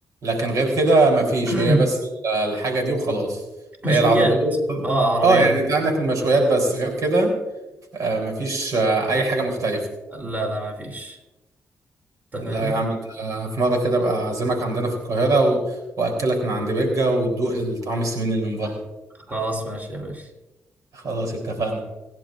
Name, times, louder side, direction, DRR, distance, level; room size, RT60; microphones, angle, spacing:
voice 1, 0.2-1.9 2.2-3.4 3.9-4.9 5.2-7.3 7.9-9.9 12.4-18.8 20.9-21.8, right 2 dB, 70° right, 2 dB, 3.7 m, -22 dB
voice 2, 1.5-1.8 3.8-4.4 4.8-5.5 10.1-11.2 12.3-12.7 18.6-18.7 19.3-20.3, right 1 dB, 30° right, 1 dB, 3.5 m, -24 dB
26.0 x 10.5 x 2.6 m, 1.0 s
cardioid pair, 65°, 6 cm